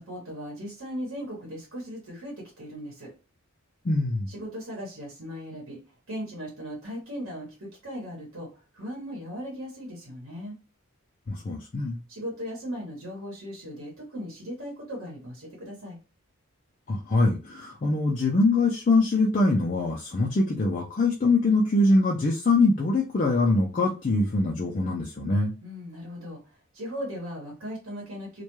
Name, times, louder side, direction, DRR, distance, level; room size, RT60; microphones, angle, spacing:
voice 1, 0.0-3.1 4.3-5.8 6.1-10.6 12.1-16.0 25.6-26.4 26.7-28.4, equal, 65° right, -2 dB, 1.0 m, -38 dB
voice 2, 3.8-4.3 11.3-12.0 16.9-25.5, left 2 dB, 35° left, -2 dB, 0.4 m, -23 dB
2.2 x 2.2 x 2.9 m, 0.32 s
head